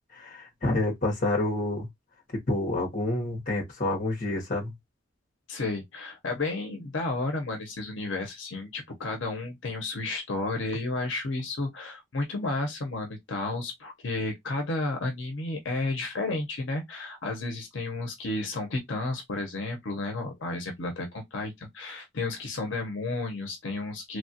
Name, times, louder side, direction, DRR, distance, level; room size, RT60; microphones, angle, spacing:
voice 1, 0.1-1.9 2.3-4.7, left 2 dB, 40° left, 1.0 m, -28 dB
voice 2, 5.5-24.2, left 2 dB, 70° left, 0.7 m, -32 dB
3.1 x 2.4 x 2.7 m
head